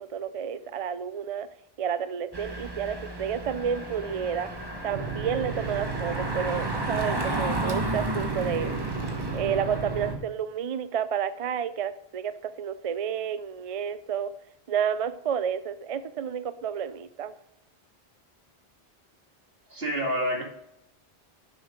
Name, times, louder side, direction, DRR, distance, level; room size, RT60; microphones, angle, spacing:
voice 1, 0.0-1.5 1.8-4.5 4.8-9.0 9.3-14.3 14.7-17.3, right 8 dB, 50° right, 13 dB, 0.4 m, -30 dB
Engine, 2.3-10.1, right 1 dB, 25° right, 1.2 m, -33 dB
sound 1, 4.9-10.2, right 4 dB, 85° right, 1.7 m, -34 dB
voice 2, 19.7-20.4, equal, 65° right, 0 dB, 2.3 m, -28 dB
10.5 x 6.9 x 3.8 m, 0.79 s
omnidirectional pair, 1.0 m